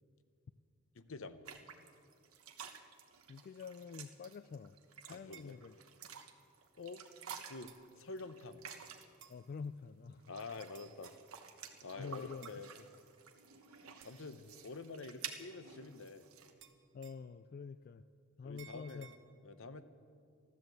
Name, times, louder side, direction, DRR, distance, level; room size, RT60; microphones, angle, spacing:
voice 1, 1.0-1.4 5.1-5.6 6.8-7.1 7.5-8.6 10.3-11.2 11.8-12.7 14.0-16.2 18.4-19.1 19.4-19.9, left 3 dB, 65° left, 11 dB, 0.8 m, -47 dB
sound 1, 1.5-9.3 10.1-16.5, right 7 dB, 85° right, 1.2 m, -52 dB
voice 2, 3.3-4.8 5.0-5.7 9.3-10.3 12.0-12.5 14.3-14.5 16.9-18.0 18.4-19.1, left 5 dB, 45° left, 12 dB, 0.3 m, -47 dB
sound 2, 5.3-5.6 6.7-6.8 7.7-7.9 9.2-9.4 10.7-11.1 12.4-12.6 14.0-14.3 16.6-17.3 18.6-19.2, right 8 dB, 60° right, 1.0 m, -58 dB
13.5 x 12.5 x 7.8 m, 2.4 s
head